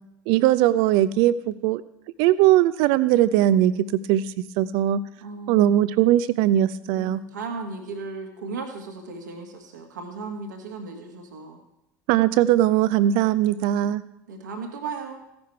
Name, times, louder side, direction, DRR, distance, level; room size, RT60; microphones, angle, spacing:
voice 1, 0.3-1.8 2.2-5.0 5.5-7.2 12.1-14.0, right 12 dB, 60° right, 16 dB, 0.6 m, -20 dB
voice 2, 5.2-5.7 6.9-11.6 14.3-15.2, right 4 dB, 75° right, 3 dB, 1.7 m, -36 dB
15.5 x 10.5 x 4.6 m, 0.83 s
figure-of-eight pair, 60°, 10 cm